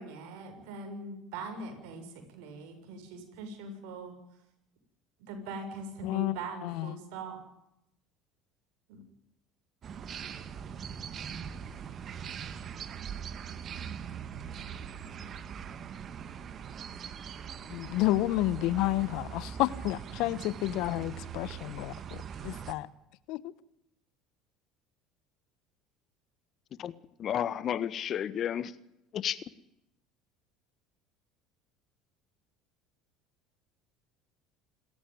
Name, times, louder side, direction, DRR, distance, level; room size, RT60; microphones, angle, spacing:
voice 1, 0.0-4.2 5.2-7.4 8.9-9.0, right 3 dB, 75° right, 6.9 m, -42 dB
voice 2, 6.0-7.0 17.7-22.9 23.3-23.5, left 16 dB, 65° left, 1.0 m, -30 dB
sound 1, 9.8-22.7, right 7 dB, 45° right, 2.0 m, -41 dB
voice 3, 27.2-28.8 29.1-29.4, left 9 dB, 45° left, 1.4 m, -32 dB
28.0 x 14.5 x 9.3 m
hypercardioid pair, 80°, 0 cm